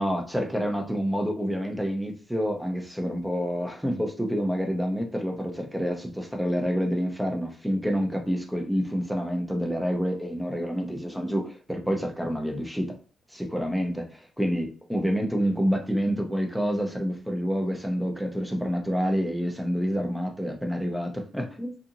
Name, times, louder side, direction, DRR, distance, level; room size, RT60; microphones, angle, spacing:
voice 1, 0.0-12.9 13.3-21.8, equal, 5° right, 3 dB, 0.6 m, -28 dB
2.8 x 2.5 x 2.5 m, 0.39 s
cardioid pair, 90°, 0 cm